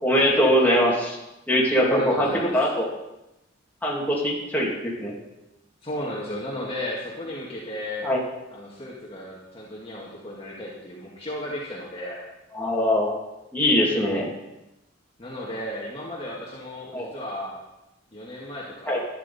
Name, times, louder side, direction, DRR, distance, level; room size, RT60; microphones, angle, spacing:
voice 1, 0.0-1.2 1.5-2.9 3.8-5.1 8.0-8.2 12.5-13.2 13.5-14.3 16.9-17.1 18.9-19.0, equal, 10° left, -4 dB, 2.5 m, -22 dB
voice 2, 1.8-2.6 5.8-8.1 8.5-12.2 15.2-17.6 18.1-19.0, left 1 dB, 30° left, -5 dB, 1.9 m, -34 dB
12.0 x 10.5 x 4.2 m, 0.93 s
head